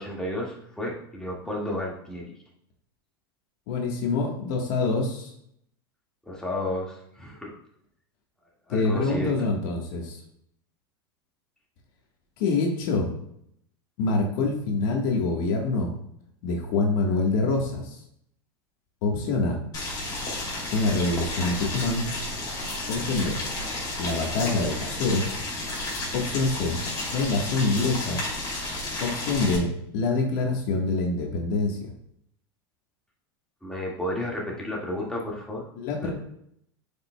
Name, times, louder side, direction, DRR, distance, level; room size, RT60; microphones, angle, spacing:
voice 1, 0.0-2.2 6.3-7.5 8.7-9.3 33.6-35.6 36.0-36.1, left 1 dB, 5° left, -3 dB, 1.9 m, -32 dB
voice 2, 3.7-5.3 8.7-10.2 12.4-13.1 14.0-15.9 16.4-18.0 19.0-19.6 20.7-22.1 22.9-23.4 24.0-25.2 26.1-26.8 27.1-28.2 29.0-31.9 35.8-36.1, left 3 dB, 60° left, 1 dB, 1.4 m, -25 dB
Boiling, 19.7-29.6, left 2 dB, 30° left, 2.8 m, -32 dB
9.5 x 5.2 x 2.2 m, 0.72 s
hypercardioid pair, 110°, 13 cm